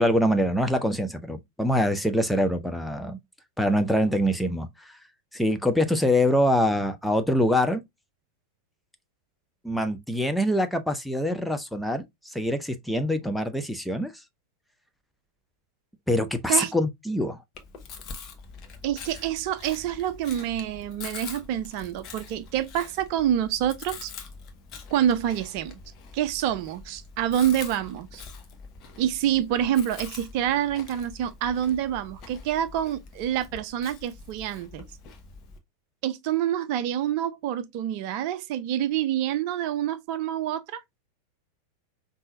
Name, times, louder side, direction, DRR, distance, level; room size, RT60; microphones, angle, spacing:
voice 1, 0.0-3.2 3.6-5.0 5.3-7.8 9.6-14.1 16.1-17.4, equal, ahead, 0.5 m, -24 dB
Chewing mastication, 17.5-35.6, left 5 dB, 35° left, 1.0 m, -44 dB
voice 2, 18.8-24.1 24.9-25.8 26.1-28.2 29.0-34.8 36.0-40.8, right 11 dB, 45° right, 0.5 m, -27 dB
5.5 x 2.7 x 2.6 m
figure-of-eight pair, 90°, 0 cm